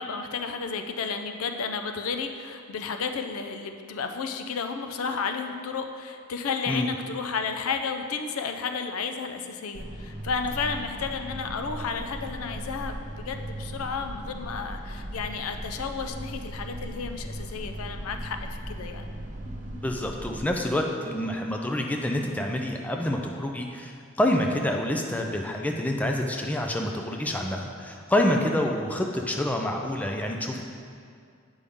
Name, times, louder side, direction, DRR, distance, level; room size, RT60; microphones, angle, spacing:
voice 1, 0.0-19.1, left 5 dB, 85° left, 6 dB, 0.5 m, -32 dB
sound 1, 9.7-20.5, right 1 dB, 40° right, 0.7 m, -38 dB
voice 2, 19.4-30.6, left 1 dB, 5° left, 2 dB, 0.4 m, -27 dB
8.3 x 5.3 x 3.5 m, 2.3 s
head